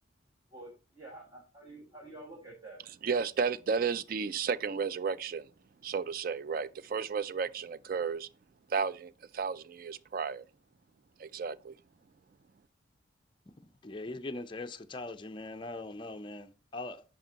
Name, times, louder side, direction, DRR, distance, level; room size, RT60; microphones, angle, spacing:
voice 1, 0.5-2.8, right 2 dB, 20° right, 1.9 m, -49 dB
voice 2, 3.0-5.5 5.8-8.3 8.7-10.5 11.2-11.7, right 5 dB, 45° right, 0.3 m, -33 dB
voice 3, 13.6-17.0, left 2 dB, 25° left, 0.5 m, -41 dB
10.5 x 4.4 x 3.9 m
head